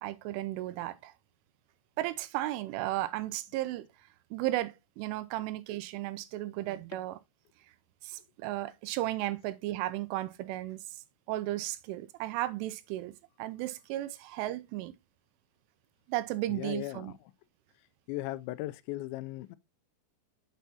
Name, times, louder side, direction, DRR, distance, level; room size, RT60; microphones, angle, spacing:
voice 1, 0.0-1.1 2.0-3.9 4.3-7.2 8.0-10.8 11.3-14.9 16.1-17.1, right 16 dB, 85° right, 3.1 m, -34 dB
voice 2, 16.5-17.2 18.1-19.6, left 17 dB, 85° left, 2.6 m, -37 dB
8.3 x 7.0 x 2.8 m
omnidirectional pair, 5.7 m